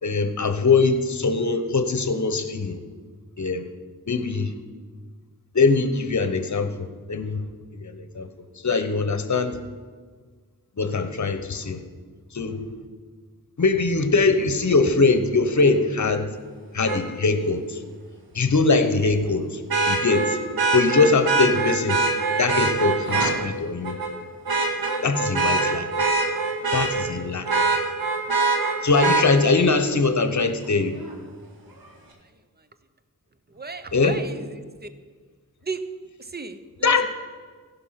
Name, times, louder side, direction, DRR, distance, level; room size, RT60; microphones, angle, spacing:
voice 1, 0.0-2.8 3.4-3.7 4.1-4.5 5.5-7.4 7.8-8.3 8.6-9.6 10.8-11.8 12.3-12.6 13.6-16.3 16.7-17.8 18.3-19.6 19.9-20.4 20.7-22.0 22.4-24.0 25.0-25.9 26.7-27.5 28.8-31.0 33.9-34.2 36.8-37.1, left 4 dB, 50° left, 9 dB, 1.1 m, -22 dB
Vehicle horn car horn honking, 16.9-17.0 19.7-23.3 23.8-24.1 24.5-27.1 27.5-29.2 31.1-31.2, right 3 dB, 75° right, 2.0 m, -23 dB
voice 2, 33.5-34.9 35.6-35.8 36.2-37.1, right 4 dB, 25° right, 11 dB, 0.8 m, -35 dB
15.5 x 5.7 x 5.9 m, 1.5 s
cardioid pair, 60°, 36 cm